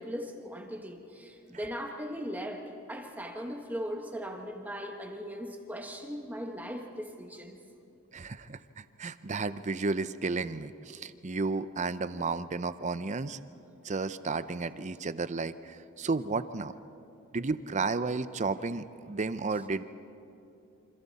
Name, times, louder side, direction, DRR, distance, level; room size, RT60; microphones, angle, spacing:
voice 1, 0.0-7.6, equal, 10° right, 3 dB, 1.3 m, -39 dB
voice 2, 8.1-13.4 13.8-16.7 17.3-19.8, right 3 dB, 30° right, 13 dB, 0.6 m, -33 dB
28.0 x 26.0 x 4.2 m, 2.8 s
head